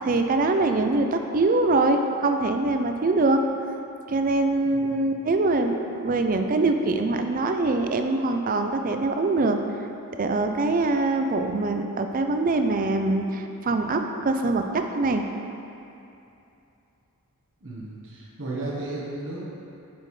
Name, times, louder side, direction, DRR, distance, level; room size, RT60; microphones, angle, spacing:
voice 1, 0.0-3.4 4.1-9.6 10.2-15.3, right 2 dB, 40° right, 5 dB, 0.4 m, -23 dB
voice 2, 4.6-5.0 17.6-19.4, right 2 dB, 60° right, -6 dB, 1.2 m, -34 dB
9.1 x 6.2 x 3.2 m, 2.8 s
head